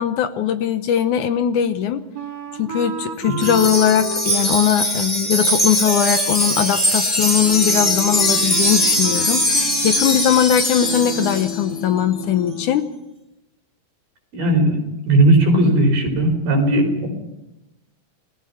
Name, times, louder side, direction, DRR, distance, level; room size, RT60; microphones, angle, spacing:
voice 1, 0.0-2.0 2.6-12.9, left 9 dB, 70° left, 9 dB, 2.1 m, -20 dB
Wind instrument woodwind instrument, 2.1-10.6, right 4 dB, 55° right, 2.7 m, -33 dB
Wind chime, 3.4-11.6, equal, 10° left, 3.4 m, -21 dB
sound 1, 7.4-12.7, left 6 dB, 35° left, 2.0 m, -34 dB
voice 2, 14.3-14.8 15.1-17.1, right 1 dB, 80° right, 2 dB, 6.3 m, -17 dB
28.0 x 19.5 x 5.8 m, 0.96 s
omnidirectional pair, 4.1 m